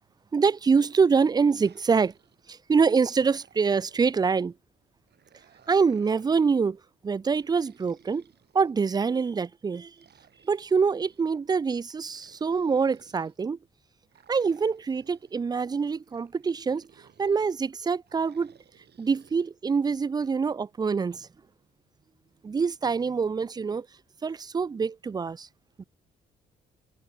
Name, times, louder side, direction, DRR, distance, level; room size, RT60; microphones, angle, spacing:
voice 1, 0.3-2.1 2.5-4.5 5.7-8.2 8.5-9.9 10.4-13.6 14.3-16.8 17.2-18.5 19.0-21.3 22.4-23.9 24.2-25.5 25.8-25.9, right 5 dB, 20° right, 0.4 m, -25 dB
sound 1, 1.4-2.6 3.0-4.5 5.1-6.7 7.3-9.0 9.9-11.3 12.0-13.4 14.1-15.4 16.1-17.6 18.1-19.5, right 8 dB, 55° right, 5.6 m, -60 dB
cardioid pair, 90°, 20 cm